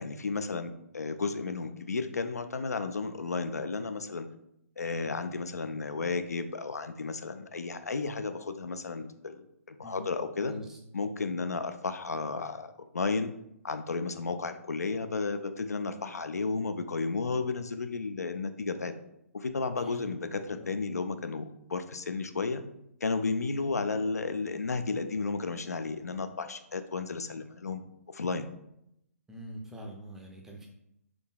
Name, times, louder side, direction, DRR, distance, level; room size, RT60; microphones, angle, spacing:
voice 1, 0.0-4.3 4.8-10.5 10.9-13.3 13.6-18.9 19.3-22.6 23.0-27.8 28.1-28.5, left 4 dB, 80° left, 9 dB, 0.3 m, -33 dB
voice 2, 10.4-10.8 19.8-20.1 20.5-20.7 29.3-30.7, equal, 5° right, 0 dB, 0.4 m, -44 dB
3.8 x 3.4 x 2.2 m, 0.78 s
figure-of-eight pair, 130°, 8 cm